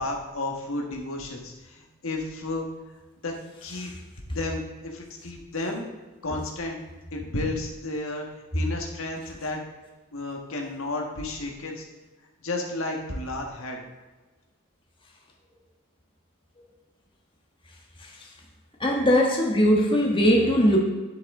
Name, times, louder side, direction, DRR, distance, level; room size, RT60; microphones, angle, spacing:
voice 1, 0.0-2.7 3.2-3.9 4.2-5.9 6.2-6.8 7.1-8.3 8.5-9.6 10.1-11.8 12.4-13.8, left 2 dB, 70° left, 1 dB, 1.5 m, -32 dB
voice 2, 18.8-20.8, equal, 25° left, -1 dB, 1.3 m, -20 dB
9.8 x 8.1 x 3.7 m, 1.2 s
head